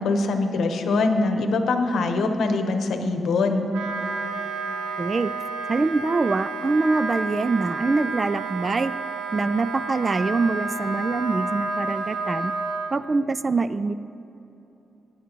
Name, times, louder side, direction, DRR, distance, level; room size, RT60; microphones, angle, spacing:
voice 1, 0.0-3.7, left 3 dB, 75° left, 6 dB, 1.0 m, -23 dB
Wind instrument woodwind instrument, 3.7-12.9, right 3 dB, 85° right, 0.8 m, -30 dB
voice 2, 5.0-5.3 5.7-8.9 9.3-12.5 12.9-13.9, right 3 dB, 35° right, 15 dB, 0.3 m, -24 dB
18.5 x 9.4 x 3.0 m, 2.9 s
cardioid pair, 85°, 0 cm